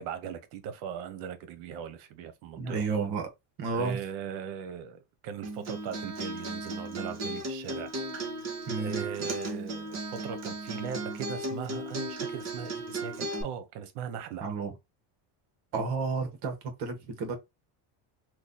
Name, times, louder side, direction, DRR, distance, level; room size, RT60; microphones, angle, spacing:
voice 1, 0.0-2.9 3.7-8.0 8.8-14.5, right 8 dB, 80° right, 0.9 m, -39 dB
voice 2, 2.6-3.3 3.6-4.0 8.7-9.0 14.4-14.7 15.7-17.4, right 4 dB, 55° right, 1.2 m, -31 dB
Acoustic guitar, 5.4-13.4, right 2 dB, 35° right, 1.3 m, -36 dB
3.1 x 2.3 x 3.9 m
cardioid pair, 125°, 48 cm